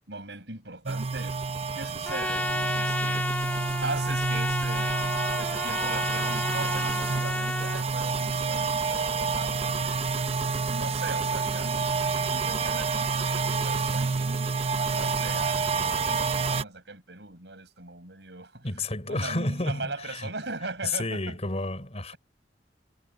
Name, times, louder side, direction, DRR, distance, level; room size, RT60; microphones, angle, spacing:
voice 1, 0.1-1.4 1.7-3.3 3.8-10.0 10.7-18.7 19.1-21.3, right 3 dB, 75° right, 7.9 m, -39 dB
sound 1, 0.9-16.6, right 4 dB, 35° right, 0.6 m, -28 dB
Trumpet, 2.0-7.8, left 2 dB, 10° left, 0.4 m, -32 dB
voice 2, 18.6-20.3 20.8-22.1, left 2 dB, 40° left, 4.3 m, -31 dB
head